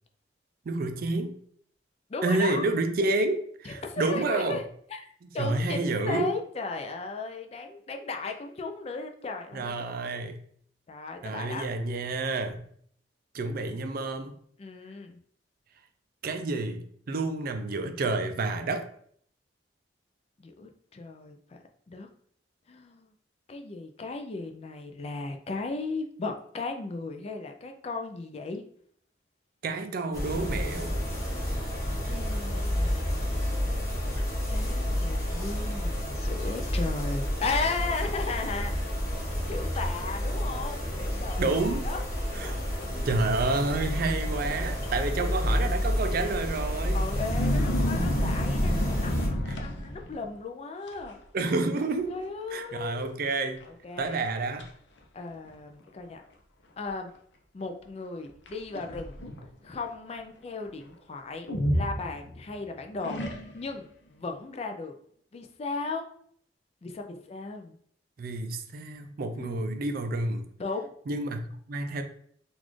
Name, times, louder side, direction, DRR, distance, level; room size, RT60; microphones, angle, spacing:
voice 1, 0.7-1.4 2.2-4.6 5.4-6.3 9.5-10.4 11.2-12.6 13.3-14.4 16.2-18.8 29.6-30.9 41.4-41.9 42.3-42.6 43.0-47.0 49.5-49.6 51.3-52.1 52.5-53.6 54.0-54.7 68.2-70.5 71.1-72.0, right 3 dB, 50° right, 7 dB, 0.4 m, -29 dB
voice 2, 2.1-2.7 3.6-4.6 4.9-5.1 5.3-10.1 10.9-11.7 14.6-15.2 20.4-21.6 21.9-22.1 22.7-23.1 23.5-28.6 32.0-33.3 34.5-39.0 39.5-42.0 42.4-43.2 45.1-45.7 46.9-51.2 52.1-53.2 53.7-54.2 55.1-56.2 56.8-57.1 57.5-59.2 59.6-63.2 63.5-64.9 65.3-66.1 66.8-67.8 69.4-69.8 70.6-70.9, left 3 dB, 35° left, 4 dB, 0.4 m, -36 dB
sound 1, 30.1-49.3, equal, 20° left, 1.0 m, -30 dB
sound 2, 47.0-50.2 50.9-51.1 51.4-51.9 52.1-52.2 53.0-53.1 53.6-53.7 54.2-54.7 55.5-55.6 58.5-59.5 61.5-62.5 63.0-63.8, equal, 75° left, 0.6 m, -30 dB
4.0 x 2.4 x 3.0 m, 0.62 s
head